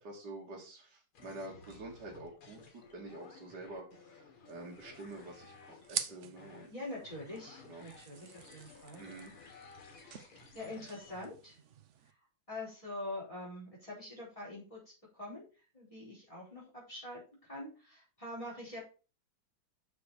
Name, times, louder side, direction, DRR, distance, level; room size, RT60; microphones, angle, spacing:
voice 1, 0.0-6.7 7.7-7.8 9.0-9.3, right 2 dB, 55° right, -2 dB, 2.7 m, -47 dB
sound 1, 1.1-11.2, left 5 dB, 85° left, 2.6 m, -56 dB
sound 2, 4.5-12.1, right 8 dB, 75° right, 0.6 m, -47 dB
voice 2, 6.7-9.0 10.5-11.6 12.5-14.8 15.1-15.4 15.7-17.2 17.5-18.8, left 1 dB, 15° left, -4 dB, 4.5 m, -44 dB
6.7 x 6.7 x 4.9 m, 0.34 s
omnidirectional pair, 2.3 m